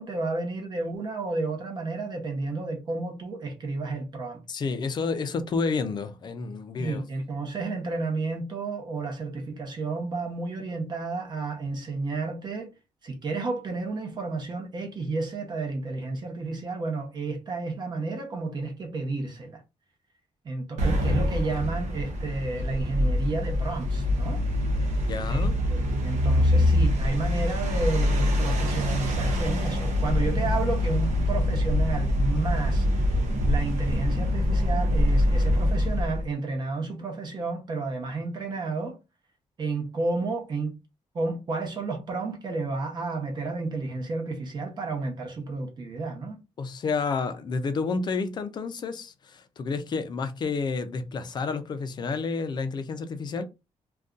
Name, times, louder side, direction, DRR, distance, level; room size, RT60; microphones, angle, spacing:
voice 1, 0.0-4.4 6.8-12.7 13.0-19.6 20.4-24.4 25.3-32.9 33.4-39.0 39.6-40.7 41.1-46.4, right 3 dB, 40° right, 0.8 m, -31 dB
voice 2, 4.5-7.1 25.1-25.6 46.6-53.4, left 4 dB, 40° left, 0.4 m, -30 dB
sound 1, 20.8-36.3, left 1 dB, 90° right, 0.8 m, -24 dB
2.6 x 2.3 x 3.6 m
wide cardioid pair, 175°, 12 cm